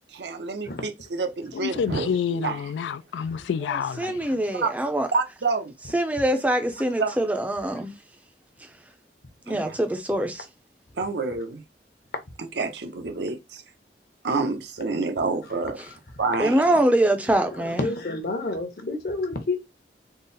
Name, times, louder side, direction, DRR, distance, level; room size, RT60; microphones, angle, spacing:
voice 1, 0.1-2.6 4.5-4.7 5.1-5.7 7.0-7.1 9.5-9.7 11.0-11.6 12.4-13.6 14.2-15.8 16.2-16.8, right 4 dB, 75° right, 0.7 m, -28 dB
voice 2, 1.5-4.3, left 7 dB, 90° left, 0.3 m, -28 dB
voice 3, 4.0-5.1 5.9-7.9 9.5-10.4 16.4-17.9, right 1 dB, 10° right, 0.5 m, -23 dB
voice 4, 17.3-19.5, left 2 dB, 55° left, 0.8 m, -29 dB
3.8 x 2.0 x 4.0 m
head